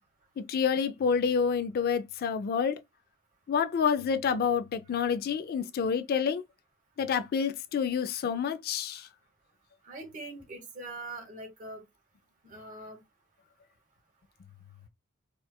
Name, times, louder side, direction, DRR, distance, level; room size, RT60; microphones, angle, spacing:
voice 1, 0.4-2.8 3.5-6.4 7.0-9.1, left 6 dB, 45° left, 0.3 m, -28 dB
voice 2, 9.9-11.8 12.4-13.0, right 2 dB, 40° right, 1.3 m, -42 dB
4.3 x 2.3 x 2.2 m
head